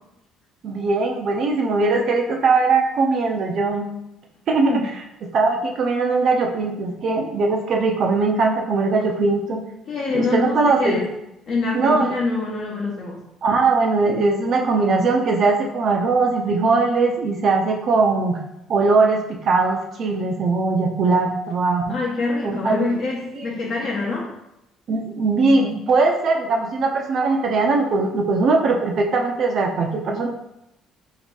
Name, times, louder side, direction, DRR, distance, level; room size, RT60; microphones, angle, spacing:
voice 1, 0.6-3.9 4.5-4.8 5.3-9.6 10.1-11.0 11.7-12.1 13.4-18.4 18.7-22.0 22.4-22.9 23.4-23.5 24.9-30.3, right 3 dB, 45° right, 2 dB, 0.5 m, -20 dB
voice 2, 9.9-11.0 11.5-13.2 21.9-24.3, left 3 dB, 50° left, -4 dB, 0.8 m, -25 dB
3.2 x 2.9 x 4.4 m, 0.86 s
cardioid pair, 140°, 0 cm